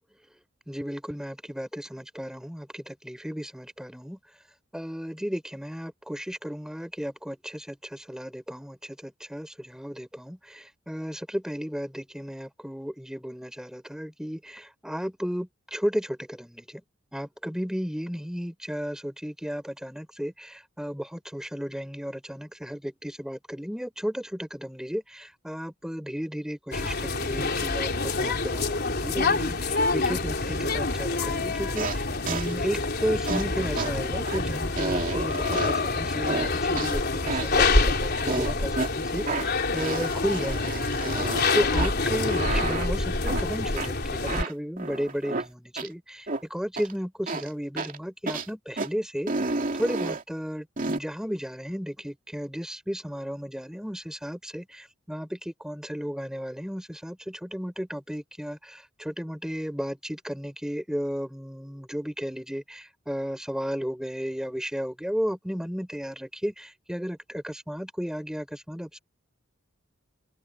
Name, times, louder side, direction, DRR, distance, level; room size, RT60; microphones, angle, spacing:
voice 1, 0.7-4.2 4.7-16.8 17.1-69.0, equal, 5° right, 3.6 m, -34 dB
sound 1, 26.7-44.4, left 3 dB, 50° left, 3.8 m, -27 dB
sound 2, 31.8-32.0 32.3-32.5 33.3-33.4 33.8-33.9 34.3-34.4 34.8-35.9 36.3-36.9 37.3-37.6 38.3-38.9 39.3-39.5 39.8-41.5 41.8-41.9 42.3-42.9 43.3-43.4 43.8-43.9 44.3-45.5 45.8-45.9 46.3-46.4 46.8-46.9 47.3-47.5 47.8-48.0 48.3-48.5 48.8-48.9 49.3-50.2 50.8-51.0, right 3 dB, 40° right, 2.5 m, -31 dB
open air
head